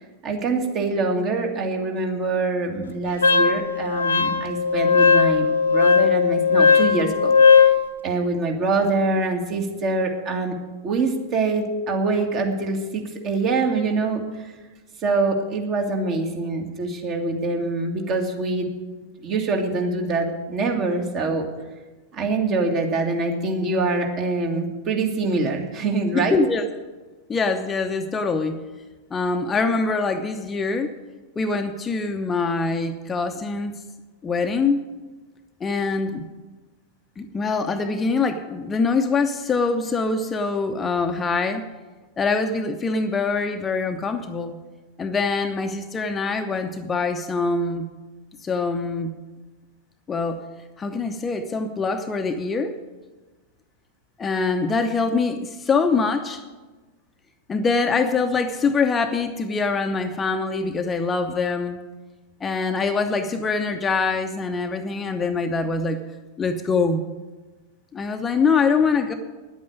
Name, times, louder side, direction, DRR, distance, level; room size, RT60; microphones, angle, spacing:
voice 1, 0.2-7.7 8.0-10.6 10.8-14.5 15.0-18.7 19.2-21.5 22.1-26.4, right 3 dB, 35° right, 3 dB, 2.0 m, -24 dB
Wind instrument woodwind instrument, 3.2-7.8, left 6 dB, 75° left, 0.9 m, -17 dB
voice 2, 26.1-26.7 27.3-28.6 29.1-30.9 31.4-33.7 34.2-34.8 35.6-36.2 37.2-41.7 42.2-44.6 45.0-47.8 48.4-49.1 50.1-50.5 50.8-52.8 54.2-56.4 57.5-61.8 62.4-66.0 66.4-67.0 67.9-69.1, left 4 dB, 20° left, 6 dB, 0.8 m, -24 dB
10.5 x 8.6 x 9.3 m, 1.2 s
figure-of-eight pair, 90°, 0 cm